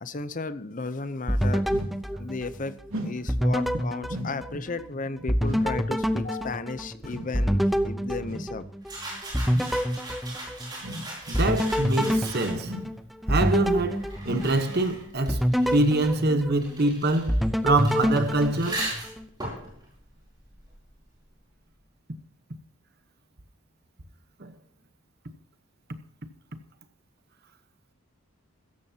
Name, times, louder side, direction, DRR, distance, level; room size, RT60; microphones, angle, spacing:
voice 1, 0.0-1.6 2.2-8.7, left 3 dB, 35° left, 0.7 m, -34 dB
sound 1, 1.3-2.9 3.3-4.9 5.3-8.9 9.3-10.9 11.3-14.8 15.3-16.9 17.3-19.2, equal, ahead, 0.6 m, -27 dB
sound 2, 1.7-2.0 2.9-3.2 4.1-4.4 5.4-5.7 7.1-7.3 8.3-8.5 9.4-9.7 10.8-11.1 11.9-12.2 12.6-12.9 13.4-13.7 14.2-14.5, equal, 75° right, 3.4 m, -36 dB
sound 3, 8.8-12.8 13.6-21.0, right 1 dB, 20° right, 5.8 m, -39 dB
voice 2, 11.3-12.7 13.3-18.9 24.4-24.5, right 2 dB, 45° right, 1.1 m, -25 dB
16.5 x 14.0 x 2.8 m
head